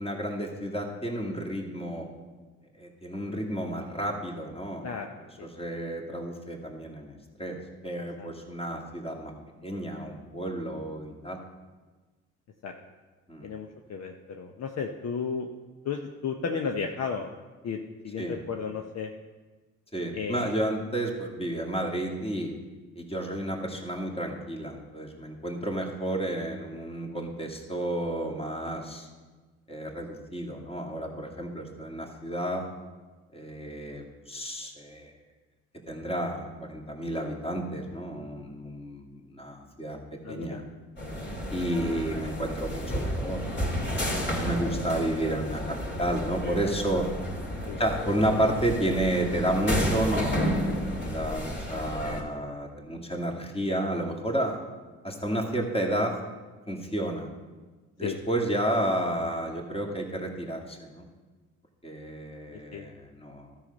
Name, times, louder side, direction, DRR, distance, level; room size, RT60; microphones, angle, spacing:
voice 1, 0.0-2.1 2.8-4.9 5.4-7.6 7.8-9.3 9.6-11.4 13.3-13.5 18.2-18.4 19.9-22.5 22.9-29.1 29.7-32.6 33.3-35.1 35.9-40.0 40.3-40.6 41.5-43.4 44.0-44.1 44.3-47.1 47.8-50.4 51.0-54.6 55.0-56.2 56.7-57.3 58.0-61.0 61.8-63.5, right 1 dB, 15° left, 1 dB, 2.1 m, -31 dB
voice 2, 13.4-15.5 15.8-17.3 17.6-19.1 20.1-20.5 40.2-40.6 41.2-41.3 47.7-47.8 58.0-58.1 62.7-62.9, left 5 dB, 50° left, 3 dB, 0.8 m, -33 dB
sound 1, 41.0-52.2, equal, 30° left, 2.7 m, -31 dB
12.5 x 5.8 x 5.3 m, 1.3 s
supercardioid pair, 65°, 34 cm